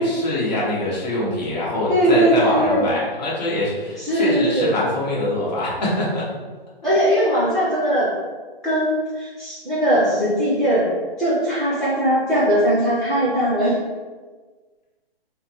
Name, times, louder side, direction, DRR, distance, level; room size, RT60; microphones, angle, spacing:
voice 1, 0.0-6.3 6.8-6.9, left 1 dB, 45° left, -6 dB, 1.4 m, -24 dB
voice 2, 1.9-2.9 4.0-4.7 6.8-8.1 8.6-10.9 11.2-13.7, right 1 dB, ahead, -13 dB, 0.5 m, -19 dB
3.6 x 2.2 x 4.3 m, 1.4 s
hypercardioid pair, 160°, 30 cm